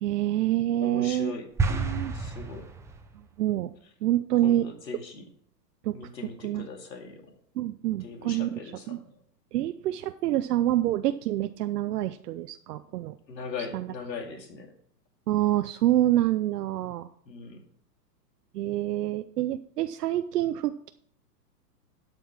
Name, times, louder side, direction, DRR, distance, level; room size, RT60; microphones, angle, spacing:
voice 1, 0.0-1.3 1.7-2.1 3.4-3.7 4.0-4.7 5.8-6.0 6.4-6.7 7.6-8.6 8.9-9.0 9.5-13.1 13.7-13.9 15.3-17.1 18.5-20.9, right 13 dB, 70° right, 9 dB, 0.7 m, -27 dB
voice 2, 0.8-2.7 4.4-5.2 5.9-7.4 8.0-9.0 13.3-14.7 17.3-17.6, left 4 dB, 90° left, 4 dB, 2.4 m, -40 dB
sound 1, 1.6-3.2, right 4 dB, 5° right, 0.6 m, -30 dB
12.0 x 5.4 x 5.9 m, 0.64 s
hypercardioid pair, 125°, 49 cm